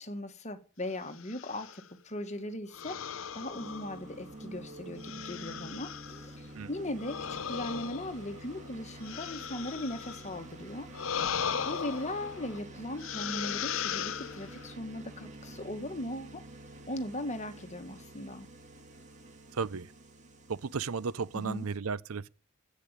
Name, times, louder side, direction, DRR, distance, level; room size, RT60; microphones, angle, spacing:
voice 1, 0.0-3.0 3.3-16.4 16.9-18.5 21.3-21.7, left 1 dB, 35° left, 1.6 m, -39 dB
sound 1, 1.1-1.8 2.7-4.4 5.0-6.3 7.0-10.4 10.9-12.6 13.0-14.7, left 7 dB, 65° left, 0.7 m, -37 dB
sound 2, 3.5-21.8, right 1 dB, 35° right, 2.5 m, -48 dB
voice 2, 19.5-19.9 20.5-22.3, right 5 dB, 80° right, 0.6 m, -34 dB
11.0 x 8.6 x 9.5 m
head